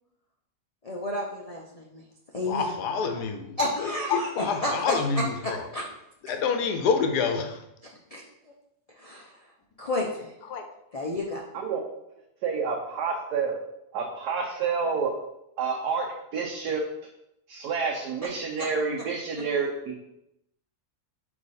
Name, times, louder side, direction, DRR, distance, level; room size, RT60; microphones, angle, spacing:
voice 1, 0.8-2.0 2.3-2.7 3.6-4.9 5.4-5.8 8.1-8.2 9.0-9.3 9.8-10.3 10.9-11.4 18.6-18.7, left 1 dB, 45° left, -1 dB, 0.4 m, -31 dB
voice 2, 2.4-5.7 6.2-7.6 10.4-10.7, left 5 dB, 85° left, 5 dB, 1.3 m, -27 dB
voice 3, 12.4-13.6 13.9-15.1 15.6-16.1 16.3-16.8 17.5-20.0, right 5 dB, 80° right, 0 dB, 1.3 m, -28 dB
5.0 x 4.7 x 4.2 m, 0.83 s
omnidirectional pair, 1.7 m